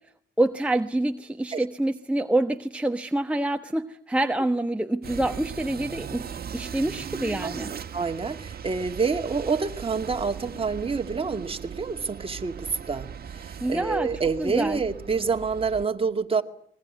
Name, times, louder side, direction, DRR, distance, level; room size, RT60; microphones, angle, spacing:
voice 1, 0.4-7.7 13.6-14.1 14.4-14.8, right 1 dB, 5° right, 1.1 m, -26 dB
sound 1, 5.0-15.8, right 7 dB, 50° right, 1.7 m, -38 dB
voice 2, 7.9-16.4, right 5 dB, 30° right, 2.3 m, -27 dB
25.0 x 21.5 x 9.5 m
cardioid pair, 90°, 20 cm